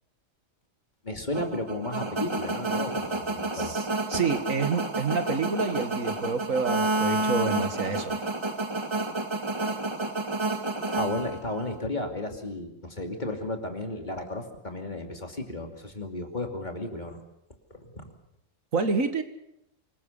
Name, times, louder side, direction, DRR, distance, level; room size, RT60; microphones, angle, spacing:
voice 1, 1.0-3.7 10.9-17.2 17.7-18.1, left 2 dB, 35° left, 4 dB, 2.8 m, -33 dB
sound 1, 1.3-11.8, right 2 dB, 20° right, 1.9 m, -30 dB
voice 2, 3.5-8.2 18.7-19.2, right 4 dB, 80° right, 9 dB, 2.2 m, -28 dB
25.5 x 21.5 x 6.8 m, 0.79 s
omnidirectional pair, 1.4 m